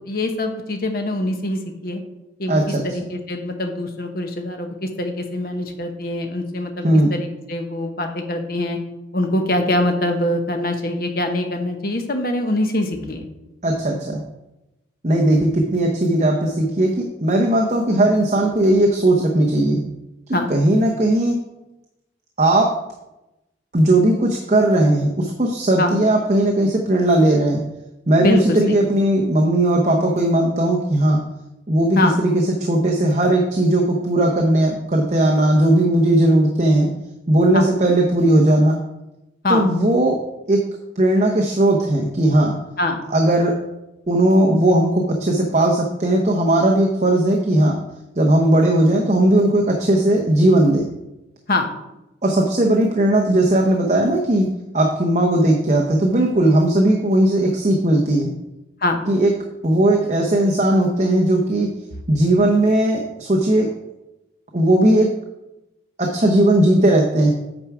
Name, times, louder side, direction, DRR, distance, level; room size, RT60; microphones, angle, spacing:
voice 1, 0.0-2.0 2.4-8.8 9.1-13.3 20.3-20.5 25.8-26.0 28.2-28.8 31.9-32.2 37.5-37.7 39.4-39.7 42.8-43.0 51.5-51.7 58.8-59.0, left 1 dB, 50° left, 5 dB, 1.0 m, -23 dB
voice 2, 2.5-2.8 6.8-7.1 13.6-14.2 15.0-19.8 20.3-21.4 22.4-22.7 23.7-27.6 28.1-31.2 31.7-36.9 37.3-38.8 39.5-40.2 40.5-40.6 41.0-42.6 43.1-43.6 44.1-47.8 48.2-50.9 52.2-58.3 59.1-59.3 59.6-61.7 62.1-63.7 64.5-65.1 66.0-67.3, right 1 dB, 40° right, 0 dB, 0.8 m, -17 dB
8.8 x 4.7 x 4.8 m, 0.94 s
head